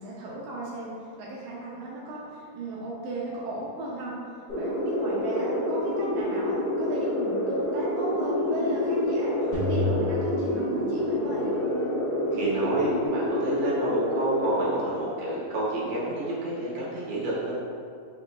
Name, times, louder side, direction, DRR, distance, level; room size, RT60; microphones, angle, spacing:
voice 1, 0.0-4.2 4.5-11.4, right 1 dB, 85° right, -6 dB, 1.7 m, -35 dB
sound 1, 4.5-14.5, left 1 dB, 75° left, 1.4 m, -28 dB
Bowed string instrument, 8.1-13.1, left 2 dB, 45° right, 1.8 m, -37 dB
sound 2, 9.5-11.7, left 3 dB, 60° left, 2.6 m, -31 dB
voice 2, 12.3-17.5, right 1 dB, 60° right, -7 dB, 1.9 m, -29 dB
5.4 x 3.7 x 2.3 m, 2.3 s
omnidirectional pair, 4.0 m